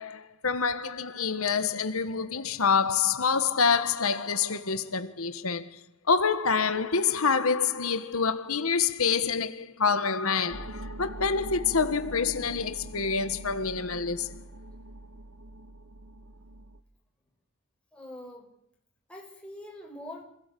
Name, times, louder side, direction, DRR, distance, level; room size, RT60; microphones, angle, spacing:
voice 1, 0.0-5.7 6.1-14.4, left 5 dB, 85° left, 1.5 m, -27 dB
sound 1, 10.5-16.8, right 1 dB, 90° right, 1.5 m, -43 dB
voice 2, 17.9-18.5 19.1-20.3, left 1 dB, 5° left, 5.7 m, -43 dB
26.5 x 17.0 x 8.5 m
head